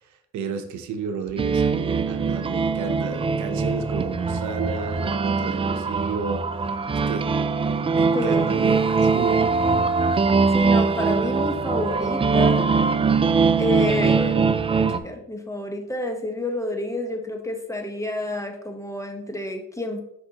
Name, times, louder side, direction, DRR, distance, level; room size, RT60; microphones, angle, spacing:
voice 1, 0.0-6.4 6.9-7.3 7.9-8.8 9.0-9.5, right 5 dB, 70° right, 7 dB, 0.9 m, -32 dB
sound 1, 1.4-15.0, right 4 dB, 20° right, 0.3 m, -22 dB
voice 2, 8.1-8.6 10.5-12.7 13.6-14.5 14.8-20.0, left 2 dB, 10° left, 3 dB, 1.1 m, -29 dB
6.4 x 5.4 x 2.9 m, 0.74 s
cardioid pair, 90°, 30 cm